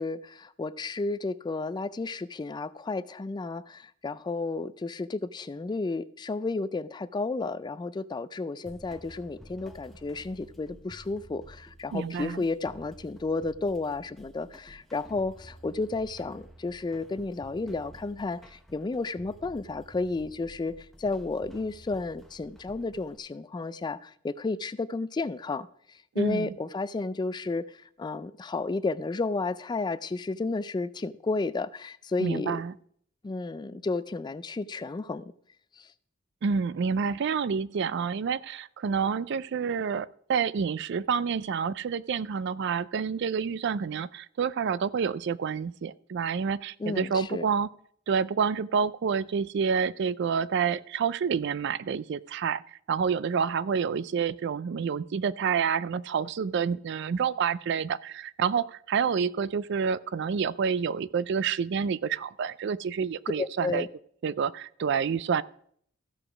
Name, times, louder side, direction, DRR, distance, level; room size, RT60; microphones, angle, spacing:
voice 1, 0.0-25.7 26.2-27.6 28.0-32.6 33.2-35.3 35.8-35.9 46.8-47.5 63.4-63.9, left 3 dB, 20° left, 0.3 m, -32 dB
sound 1, 8.7-23.2, equal, ahead, 0.8 m, -52 dB
voice 2, 11.9-12.4 26.2-26.5 32.2-32.7 36.4-47.7 48.1-52.6 52.9-63.9 64.2-65.4, right 6 dB, 60° right, 0.4 m, -28 dB
14.5 x 4.9 x 6.0 m
head